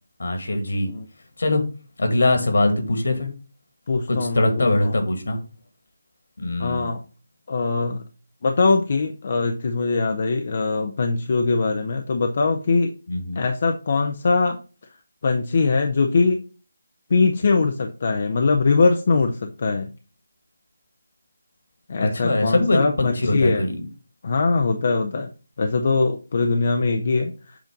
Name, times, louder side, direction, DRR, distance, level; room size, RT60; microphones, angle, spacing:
voice 1, 0.2-0.9 1.4-1.6 2.0-3.3 4.1-5.4 6.4-6.9 13.1-13.5 22.0-23.8, left 2 dB, 70° left, 5 dB, 1.8 m, -22 dB
voice 2, 3.9-4.9 6.6-7.0 7.5-8.0 8.4-12.9 13.4-14.6 15.2-16.4 17.1-19.9 21.9-23.6 24.2-25.3 25.6-27.6, left 4 dB, 50° left, 5 dB, 0.5 m, -22 dB
7.5 x 2.6 x 5.1 m, 0.35 s
figure-of-eight pair, 160°, 0 cm